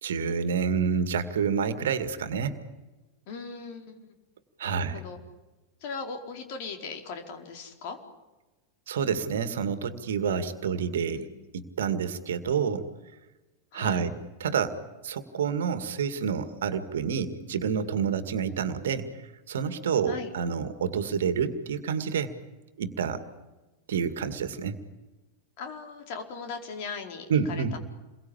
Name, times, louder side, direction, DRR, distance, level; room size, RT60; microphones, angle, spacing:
voice 1, 0.0-2.6 4.6-5.0 8.9-11.3 11.5-12.9 13.7-14.1 14.4-14.8 15.0-19.1 19.5-22.3 22.8-23.2 23.9-24.8 27.3-27.8, right 6 dB, 60° right, 11 dB, 2.1 m, -28 dB
voice 2, 3.3-4.0 4.6-5.2 5.8-8.0 10.9-11.3 13.7-14.0 20.1-20.3 25.6-27.8, left 5 dB, 45° left, 4 dB, 4.5 m, -39 dB
29.0 x 22.5 x 8.7 m, 1.1 s
figure-of-eight pair, 90°, 0 cm